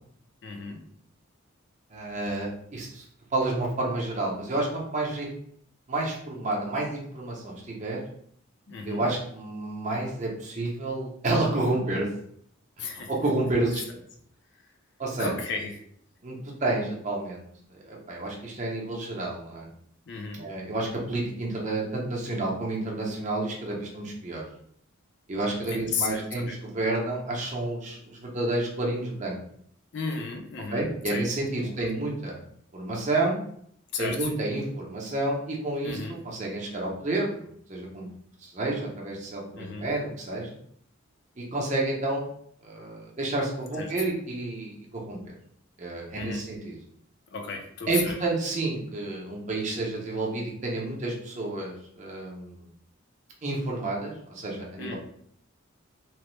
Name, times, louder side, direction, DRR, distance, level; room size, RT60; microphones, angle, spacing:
voice 1, 0.4-0.8 8.7-9.1 12.8-13.1 13.7-13.8 15.2-15.8 20.1-20.5 25.7-26.6 29.9-31.3 31.6-31.8 33.9-34.3 35.8-36.2 39.5-39.9 43.8-43.9 46.1-46.5 47.3-48.2 54.8-54.9, left 4 dB, 55° left, 3 dB, 0.4 m, -34 dB
voice 2, 1.9-3.0 3.3-5.3 5.9-8.0 8.8-12.1 12.8-13.8 15.0-15.3 16.2-17.4 17.8-19.7 20.4-24.4 25.3-29.4 30.7-32.4 32.7-33.4 34.0-36.0 36.2-38.1 38.4-40.6 41.4-42.2 42.6-45.3 45.8-46.7 47.9-52.6 53.4-54.9, right 2 dB, 35° right, -2 dB, 0.6 m, -30 dB
2.9 x 2.0 x 3.0 m, 0.68 s
head